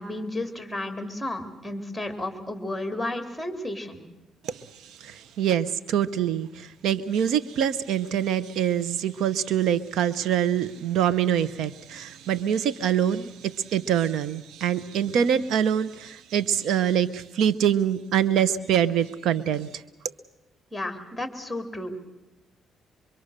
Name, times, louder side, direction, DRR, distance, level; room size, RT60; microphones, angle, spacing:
voice 1, 0.0-4.0 20.7-22.0, left 1 dB, ahead, 6 dB, 3.5 m, -32 dB
voice 2, 4.4-19.8, right 9 dB, 80° right, 16 dB, 0.8 m, -25 dB
24.5 x 24.0 x 6.6 m, 1.0 s
cardioid pair, 90°, 0 cm